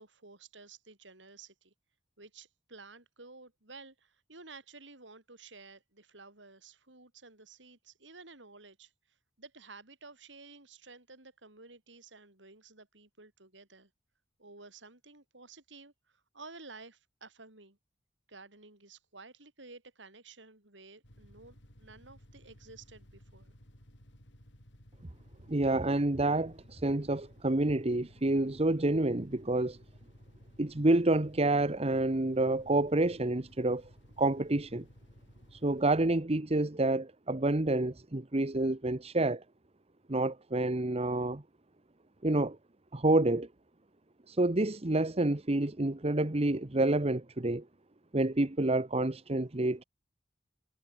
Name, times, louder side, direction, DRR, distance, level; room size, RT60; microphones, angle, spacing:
voice 1, 0.0-1.7 2.2-8.9 9.4-13.9 14.4-17.8 18.3-23.5, right 3 dB, 80° right, 6.9 m, -53 dB
sound 1, 21.0-36.1, equal, 70° left, 4.8 m, -57 dB
voice 2, 25.5-29.8 30.6-33.8 34.2-34.8 35.5-39.4 40.1-41.4 42.2-42.6 42.9-43.5 44.3-47.6 48.1-49.8, right 2 dB, 35° right, 1.2 m, -28 dB
head